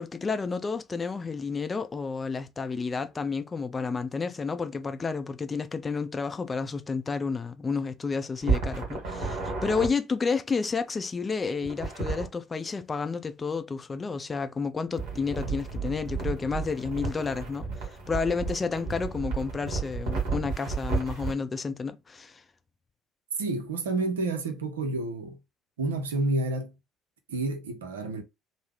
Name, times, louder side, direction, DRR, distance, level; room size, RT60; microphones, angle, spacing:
voice 1, 0.0-22.4, left 5 dB, 25° left, 0.4 m, -31 dB
sound 1, 8.4-9.9 11.6-12.3 15.0-21.3, right 4 dB, 60° right, 1.4 m, -32 dB
voice 2, 23.4-25.4 25.8-26.7 27.3-28.2, right 2 dB, 75° right, 0.6 m, -29 dB
3.3 x 2.0 x 3.4 m
figure-of-eight pair, 55°, 0 cm